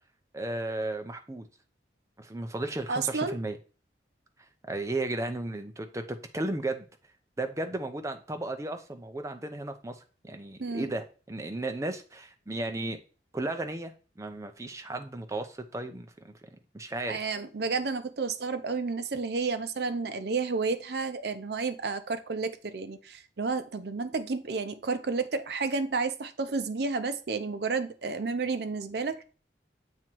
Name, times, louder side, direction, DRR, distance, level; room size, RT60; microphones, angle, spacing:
voice 1, 0.3-1.5 2.2-3.6 4.6-6.9 7.4-13.0 13.3-17.3, right 2 dB, 15° right, 6 dB, 0.5 m, -35 dB
voice 2, 2.9-3.4 10.6-10.9 17.1-29.2, right 4 dB, 60° right, 10 dB, 0.6 m, -31 dB
7.4 x 3.0 x 4.5 m, 0.36 s
head